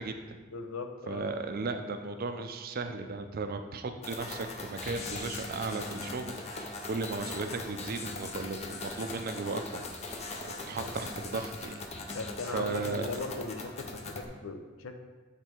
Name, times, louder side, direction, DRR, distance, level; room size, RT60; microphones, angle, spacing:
voice 1, 0.0-0.4 1.1-11.8 12.1-12.2 12.5-13.2, right 3 dB, 45° right, 7 dB, 0.5 m, -36 dB
voice 2, 0.5-1.3 10.8-10.9 12.1-14.9, left 3 dB, 70° left, 6 dB, 0.6 m, -39 dB
sound 1, 4.0-14.3, left 3 dB, 30° left, 0.6 m, -40 dB
8.2 x 3.3 x 4.5 m, 1.3 s
head